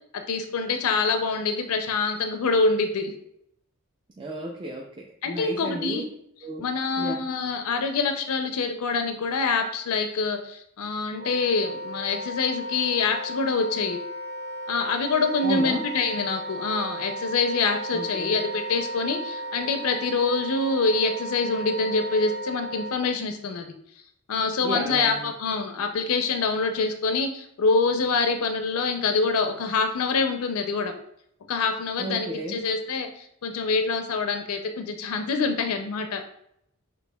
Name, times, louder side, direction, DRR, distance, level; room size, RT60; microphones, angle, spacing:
voice 1, 0.3-3.1 5.2-6.0 6.6-14.0 14.7-23.7 24.3-30.9 31.5-36.2, left 4 dB, 85° left, 6 dB, 0.4 m, -25 dB
voice 2, 4.2-6.0 6.4-6.7 7.0-7.2 15.4-15.8 17.9-18.4 24.6-25.3 32.0-32.6, right 1 dB, 20° right, 0 dB, 0.3 m, -33 dB
Wind instrument woodwind instrument, 11.1-23.1, right 1 dB, 80° right, 1.3 m, -35 dB
6.0 x 3.2 x 2.2 m, 0.73 s
head